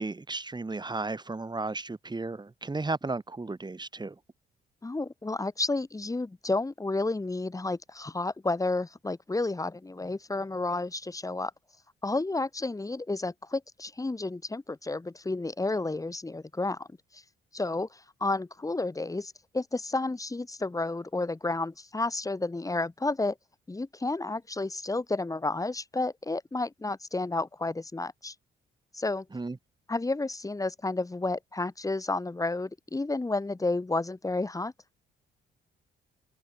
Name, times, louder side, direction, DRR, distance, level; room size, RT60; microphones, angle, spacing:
voice 1, 0.0-4.1 29.3-29.6, right 3 dB, 20° right, 6.1 m, -34 dB
voice 2, 4.8-11.5 12.0-16.9 17.1-17.2 17.5-23.4 23.7-28.3 28.9-29.3 29.9-34.7, left 2 dB, 15° left, 2.5 m, -31 dB
open air
cardioid pair, 90°, 20 cm